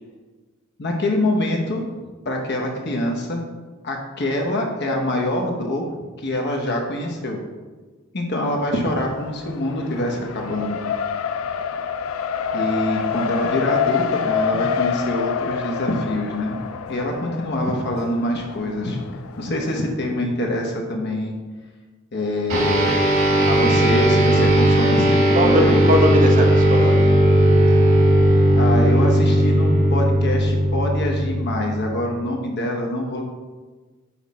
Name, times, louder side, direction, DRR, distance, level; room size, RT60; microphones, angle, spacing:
voice 1, 0.8-1.8 2.2-3.4 3.8-5.9 6.2-7.4 8.1-10.8 12.5-16.6 16.9-19.0 19.4-21.4 22.1-22.9 23.5-25.9 28.6-33.2, left 1 dB, 55° left, 1 dB, 0.9 m, -25 dB
Race car auto racing, 8.8-19.8, left 7 dB, 75° left, 0.4 m, -27 dB
sound 1, 22.5-32.2, right 1 dB, 80° right, 1.6 m, -17 dB
voice 2, 25.4-26.9, equal, 40° right, 2 dB, 0.9 m, -20 dB
5.8 x 4.8 x 4.2 m, 1.3 s
head